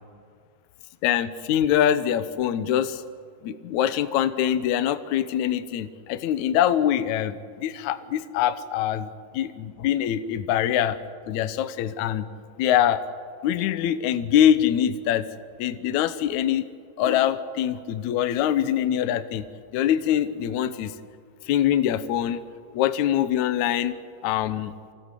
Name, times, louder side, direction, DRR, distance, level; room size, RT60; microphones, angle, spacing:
voice 1, 1.0-3.0 3.4-11.0 11.3-12.3 12.6-13.0 13.4-15.2 15.6-16.6 17.0-19.4 19.7-20.9 21.5-22.4 22.7-23.9 24.2-24.7, left 10 dB, 80° left, 11 dB, 1.7 m, -24 dB
25.5 x 17.0 x 8.3 m, 2.2 s
omnidirectional pair, 4.6 m